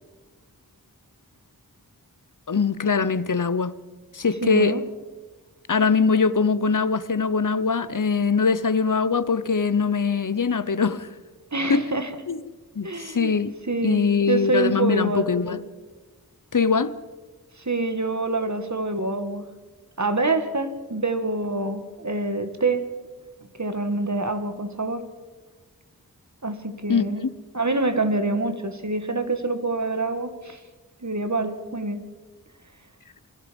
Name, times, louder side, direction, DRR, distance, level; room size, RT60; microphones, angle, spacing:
voice 1, 2.5-3.8 4.1-4.8 5.7-11.1 11.7-11.9 12.3-12.4 12.8-13.5 13.8-15.6 16.5-16.9 26.9-27.3, left 5 dB, 55° left, 1.0 m, -22 dB
voice 2, 4.4-4.8 11.5-12.1 12.8-13.3 13.7-15.6 17.6-19.5 20.0-22.8 23.6-25.1 26.4-27.2 27.5-30.6 31.0-32.0, right 2 dB, 50° right, 2.1 m, -26 dB
28.0 x 21.5 x 5.4 m
wide cardioid pair, 45°, 36 cm